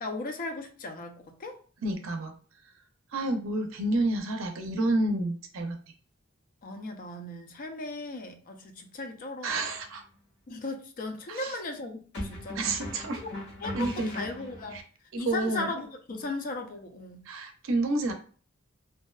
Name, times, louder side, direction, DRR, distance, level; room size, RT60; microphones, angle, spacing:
voice 1, 0.0-1.6 6.6-9.6 10.5-12.7 13.1-13.3 13.6-14.8 15.2-17.3, left 2 dB, 45° left, 0.4 m, -37 dB
voice 2, 1.8-2.3 3.1-5.8 9.4-10.0 11.3-11.6 12.5-13.2 13.7-14.2 14.7-14.8 15.1-15.7 17.3-18.1, right 2 dB, 70° right, 0.5 m, -29 dB
sound 1, 9.5-9.7 12.1-14.8, left 1 dB, 60° left, 1.1 m, -39 dB
2.6 x 2.2 x 2.2 m
head